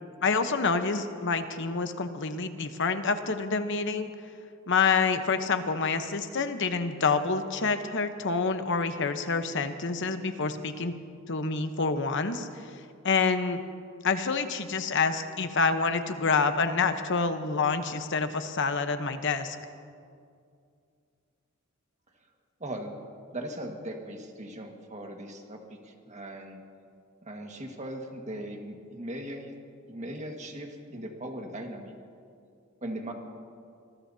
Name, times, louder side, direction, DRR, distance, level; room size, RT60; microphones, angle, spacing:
voice 1, 0.2-4.1 4.7-10.9 11.3-12.5 13.0-13.6 14.0-19.6, left 4 dB, 60° left, 8 dB, 1.0 m, -27 dB
voice 2, 22.6-22.9 23.3-26.6 27.2-29.5 29.9-31.9 32.8-33.1, right 1 dB, 35° right, 2 dB, 1.7 m, -39 dB
26.0 x 20.0 x 2.8 m, 2.4 s
head